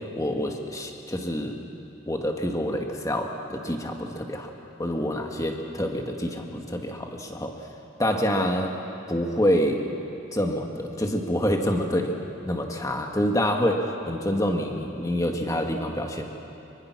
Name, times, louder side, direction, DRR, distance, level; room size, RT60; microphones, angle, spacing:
voice 1, 0.2-1.6 2.1-4.5 4.8-7.5 8.0-8.8 9.1-9.9 10.3-12.1 12.4-16.3, equal, 15° left, 3 dB, 1.7 m, -27 dB
24.5 x 23.5 x 6.1 m, 2.8 s
head